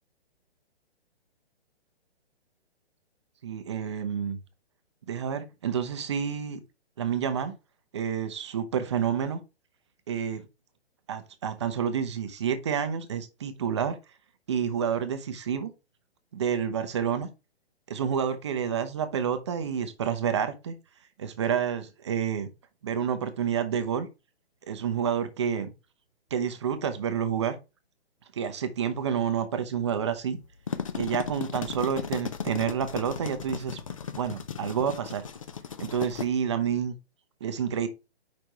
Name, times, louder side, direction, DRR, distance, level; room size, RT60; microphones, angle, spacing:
voice 1, 3.4-4.4 5.1-6.6 7.0-7.5 7.9-9.4 10.1-10.4 11.1-14.0 14.5-15.7 16.3-17.3 17.9-20.7 21.2-22.5 22.8-24.1 24.7-25.7 26.3-27.6 28.3-30.4 30.9-33.8 34.2-35.2 35.8-37.0 37.4-37.9, right 8 dB, 25° right, 0.6 m, -29 dB
sound 1, 30.4-36.3, left 7 dB, 30° left, 0.4 m, -36 dB
5.2 x 4.5 x 4.6 m
hypercardioid pair, 160°, 33 cm